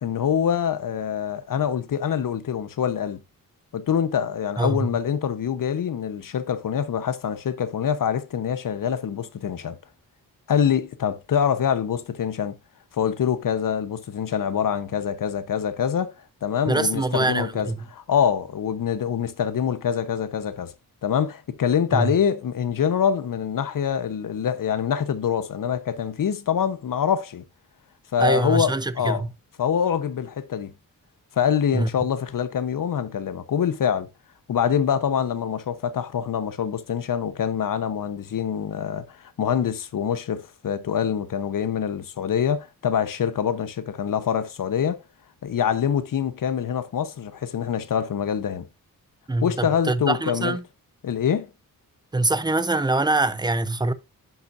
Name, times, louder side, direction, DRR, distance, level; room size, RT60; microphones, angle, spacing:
voice 1, 0.0-3.2 3.7-9.8 10.5-12.6 12.9-20.7 21.0-27.4 28.1-29.2 29.6-30.7 31.4-34.1 34.5-45.0 45.4-48.7 49.4-50.6 51.0-51.5, left 8 dB, 65° left, 1.0 m, -25 dB
voice 2, 4.6-4.9 16.7-17.8 21.9-22.1 28.2-29.3 31.7-31.9 49.3-50.6 52.1-53.9, right 2 dB, 10° right, 0.7 m, -24 dB
10.5 x 5.8 x 2.6 m
cardioid pair, 85°, 35 cm